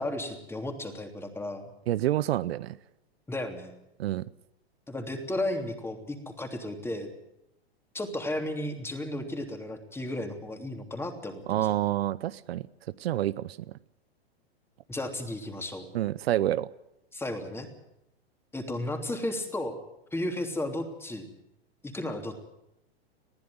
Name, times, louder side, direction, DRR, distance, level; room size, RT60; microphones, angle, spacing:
voice 1, 0.0-1.6 3.3-3.7 4.9-7.1 7.9-11.7 14.9-15.9 17.1-17.7 18.5-19.8 20.1-21.3 21.8-22.4, left 1 dB, 5° left, 5 dB, 3.1 m, -34 dB
voice 2, 1.9-2.8 4.0-4.2 11.5-12.7 13.0-13.6 15.9-16.7, right 13 dB, 70° right, 17 dB, 0.8 m, -28 dB
21.0 x 15.0 x 9.5 m, 0.86 s
hypercardioid pair, 115°, 32 cm